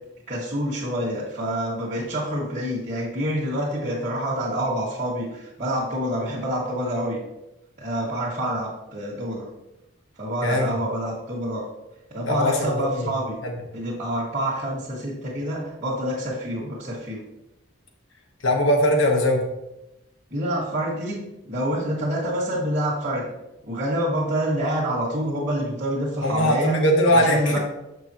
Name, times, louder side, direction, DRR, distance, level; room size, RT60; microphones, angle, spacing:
voice 1, 0.3-7.2 7.8-9.4 10.2-11.6 12.1-13.4 13.7-17.2 20.3-21.2 21.4-23.2 23.6-26.8 27.1-27.6, right 1 dB, 35° right, -8 dB, 1.7 m, -27 dB
voice 2, 10.4-10.7 12.3-13.1 13.4-13.5 18.4-19.4 26.2-27.6, equal, 70° left, 1 dB, 1.2 m, -20 dB
7.1 x 6.2 x 3.0 m, 0.93 s
head